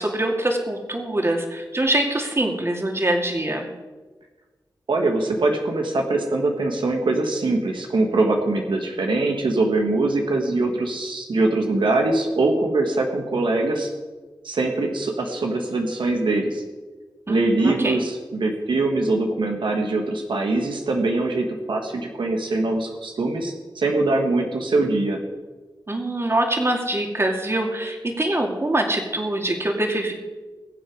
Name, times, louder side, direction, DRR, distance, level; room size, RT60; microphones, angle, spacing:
voice 1, 0.0-3.7 17.3-18.0 25.9-30.1, right 1 dB, 30° right, 2 dB, 2.5 m, -24 dB
voice 2, 4.9-13.9 14.4-16.6 17.3-25.2, right 2 dB, 80° right, 2 dB, 1.6 m, -22 dB
21.0 x 7.8 x 4.9 m, 1.3 s
cardioid pair, 60°, 8 cm